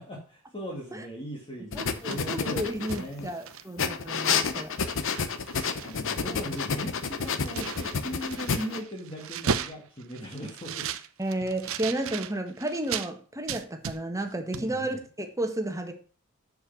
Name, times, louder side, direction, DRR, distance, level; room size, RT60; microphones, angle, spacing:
voice 1, 0.0-3.2 5.8-11.0 14.5-15.0, equal, 25° left, -1 dB, 2.1 m, -39 dB
sound 1, 1.7-3.3 3.8-8.8, left 5 dB, 65° left, 0.9 m, -30 dB
voice 2, 1.7-4.7 11.2-15.9, right 1 dB, 15° right, 4 dB, 1.6 m, -32 dB
sound 2, 1.8-3.9 4.3-4.5 4.7-6.0 6.3-13.1 13.5-14.3 14.5-14.7, right 7 dB, 65° right, 0.7 m, -36 dB
7.0 x 6.7 x 7.1 m, 0.40 s
head